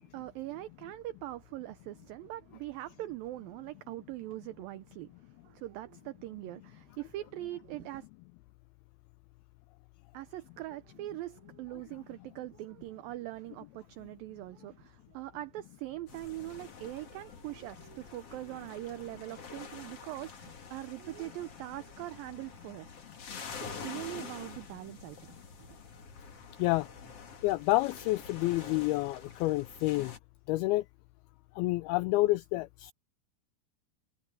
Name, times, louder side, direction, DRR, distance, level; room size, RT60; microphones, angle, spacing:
voice 1, 0.0-5.1 5.4-8.1 10.1-22.9 23.7-25.4, right 16 dB, 90° right, 2.0 m, -42 dB
sound 1, 16.1-30.2, left 5 dB, 40° left, 2.9 m, -47 dB
voice 2, 27.4-30.2 30.5-30.9 31.6-32.9, left 19 dB, 85° left, 2.2 m, -29 dB
omnidirectional pair, 4.9 m